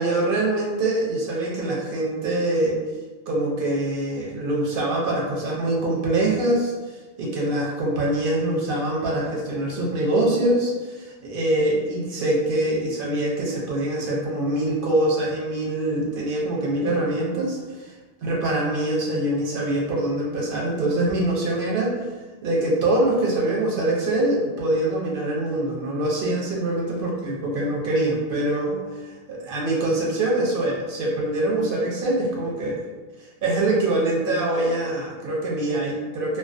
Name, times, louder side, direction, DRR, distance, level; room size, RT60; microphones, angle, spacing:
voice 1, 0.0-2.8 3.3-6.7 7.2-17.9 18.2-22.1 22.4-32.8 33.4-36.4, right 1 dB, 60° right, -3 dB, 0.6 m, -24 dB
2.4 x 2.1 x 2.4 m, 1.3 s
omnidirectional pair, 1.1 m